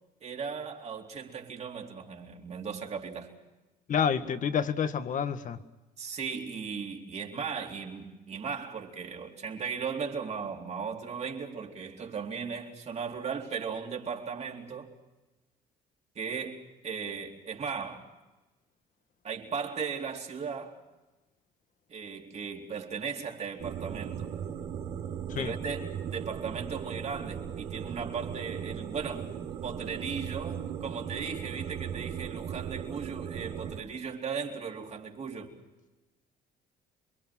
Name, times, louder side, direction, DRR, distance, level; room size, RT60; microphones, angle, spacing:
voice 1, 0.2-3.3 6.0-14.9 16.2-18.1 19.2-20.8 21.9-24.3 25.4-29.3 29.6-35.5, right 6 dB, 40° right, 4.1 m, -37 dB
voice 2, 3.9-5.6 25.3-25.5, left 7 dB, 50° left, 1.8 m, -28 dB
sound 1, 23.6-33.8, right 8 dB, 70° right, 3.7 m, -37 dB
28.0 x 23.5 x 6.2 m
cardioid pair, 110°, 17 cm